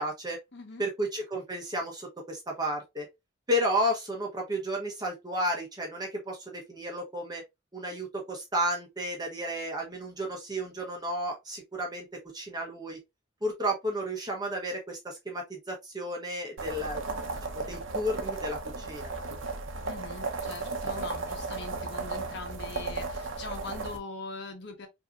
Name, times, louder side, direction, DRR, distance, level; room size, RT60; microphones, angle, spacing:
voice 1, 0.0-0.4 0.8-3.1 3.5-7.4 7.7-12.1 12.3-13.0 13.4-17.0 17.5-19.1, equal, 20° right, 0.9 m, -32 dB
voice 2, 0.5-0.9 19.8-24.9, left 3 dB, 55° left, 1.2 m, -42 dB
sound 1, 16.6-24.0, right 3 dB, 70° right, 0.8 m, -35 dB
5.4 x 2.8 x 2.4 m
head